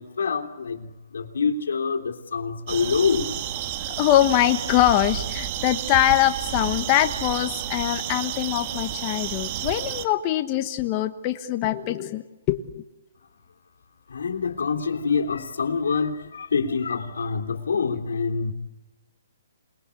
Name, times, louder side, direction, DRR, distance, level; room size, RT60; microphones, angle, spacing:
voice 1, 0.0-3.4 14.1-18.5, left 5 dB, 80° left, 4 dB, 3.2 m, -26 dB
sound 1, 2.7-10.1, right 11 dB, 35° right, 1.6 m, -31 dB
voice 2, 3.8-12.2 12.5-12.8, left 13 dB, 30° left, 6 dB, 1.3 m, -23 dB
28.0 x 21.0 x 8.5 m, 1.0 s
hypercardioid pair, 155°, 0 cm